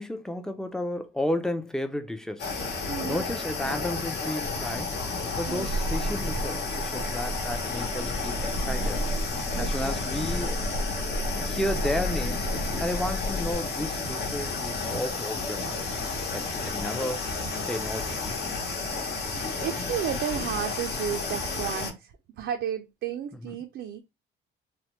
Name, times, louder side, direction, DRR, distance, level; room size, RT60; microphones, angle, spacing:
voice 1, 0.0-4.9 5.4-9.0 9.6-10.9 11.4-12.5 12.8-15.8 16.3-18.3 23.3-23.6, left 1 dB, 5° left, 0.4 m, -33 dB
sound 1, 2.4-21.9, left 3 dB, 60° left, 1.0 m, -32 dB
voice 2, 2.9-3.2 5.5-5.7 9.5-10.0 19.2-24.0, right 9 dB, 65° right, 0.4 m, -33 dB
sound 2, 4.4-13.5, equal, 80° left, 0.7 m, -33 dB
3.2 x 2.1 x 2.9 m
cardioid pair, 90°, 20 cm